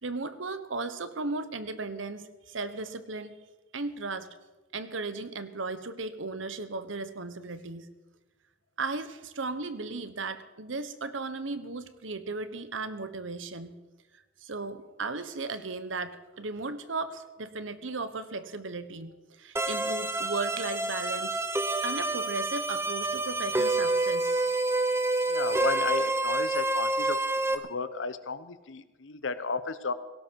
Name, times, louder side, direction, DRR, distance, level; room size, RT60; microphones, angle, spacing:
voice 1, 0.0-3.4 3.7-4.3 4.7-7.9 8.8-13.8 14.4-21.4 21.8-24.5, right 3 dB, 85° right, 12 dB, 1.2 m, -36 dB
sound 1, 19.6-27.6, right 2 dB, 15° right, 1.0 m, -28 dB
voice 2, 25.3-27.2 27.5-29.9, left 4 dB, 75° left, 13 dB, 0.9 m, -34 dB
17.5 x 17.5 x 4.7 m, 1.2 s
head